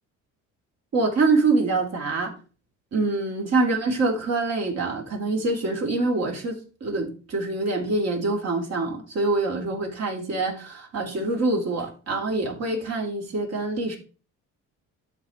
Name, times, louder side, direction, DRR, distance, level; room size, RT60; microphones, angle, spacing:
voice 1, 0.9-2.4 2.9-14.0, right 3 dB, 55° right, 3.2 m, -25 dB
12.5 x 4.4 x 3.1 m
cardioid pair, 105°, 32 cm